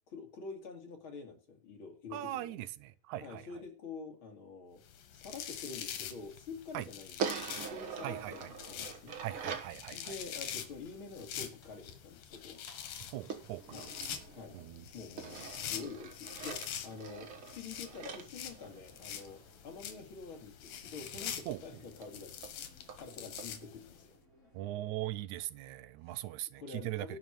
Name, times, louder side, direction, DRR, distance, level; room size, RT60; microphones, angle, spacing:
voice 1, 0.1-2.6 3.2-4.8 5.1-9.2 9.9-12.6 13.7-13.9 14.3-14.6 14.9-22.4 23.0-24.2 26.1-26.2 26.6-27.2, left 4 dB, 40° left, 2.9 m, -47 dB
voice 2, 2.1-3.5 6.7-6.9 8.0-8.5 9.2-10.1 13.1-13.8 14.5-14.8 21.5-21.6 24.5-27.1, right 15 dB, 75° right, 2.0 m, -40 dB
sound 1, 4.9-24.0, left 9 dB, 80° left, 2.9 m, -45 dB
sound 2, 7.2-9.8 13.3-14.7 15.2-19.3 21.2-21.3 21.6-21.7 22.0-22.1 22.4-22.5 22.9-23.0 23.4-23.5, right 6 dB, 50° right, 2.0 m, -43 dB
sound 3, 10.9-24.7, left 1 dB, 25° left, 5.1 m, -64 dB
12.0 x 5.3 x 8.7 m
omnidirectional pair, 3.7 m